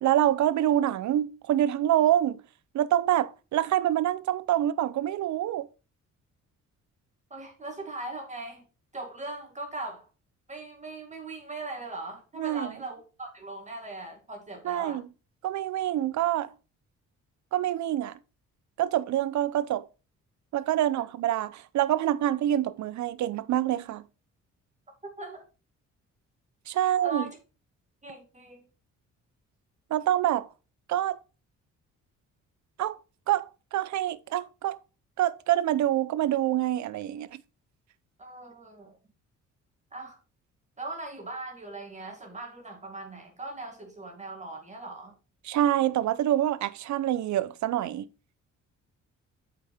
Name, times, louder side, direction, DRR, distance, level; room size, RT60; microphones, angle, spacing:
voice 1, 0.0-2.4 2.7-5.7 12.4-12.7 14.6-15.0 15.4-16.5 17.5-18.2 18.8-19.9 20.5-24.0 26.7-27.2 29.9-30.5 30.9-31.2 32.8-33.0 33.3-34.8 35.2-37.4 45.5-48.1, right 12 dB, 70° right, 0.7 m, -26 dB
voice 2, 7.3-8.7 8.9-10.1 10.5-15.0 25.2-25.5 26.8-27.4 28.0-28.7 38.2-39.0 39.9-40.2 40.8-45.2, right 2 dB, 25° right, 2.2 m, -40 dB
8.2 x 5.1 x 4.3 m
cardioid pair, 90°, 30 cm